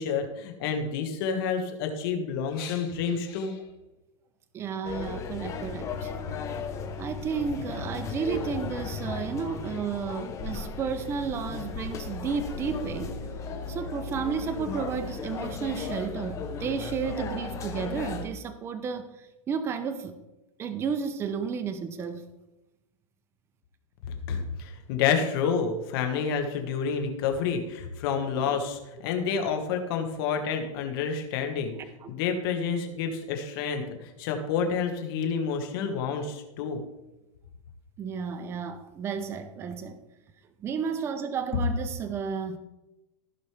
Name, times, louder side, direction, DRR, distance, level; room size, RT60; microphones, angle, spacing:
voice 1, 0.0-3.6 24.3-31.7 32.1-36.8, left 6 dB, 45° left, 5 dB, 1.6 m, -29 dB
voice 2, 4.5-6.1 7.0-13.2 13.7-19.1 19.5-20.2 20.6-22.2 28.4-28.6 31.7-32.1 38.0-40.0 40.6-42.6, right 6 dB, 15° right, 9 dB, 0.6 m, -32 dB
sound 1, 4.8-18.3, left 5 dB, 20° left, 0.9 m, -36 dB
15.5 x 5.2 x 3.4 m, 0.98 s
supercardioid pair, 155°, 17 cm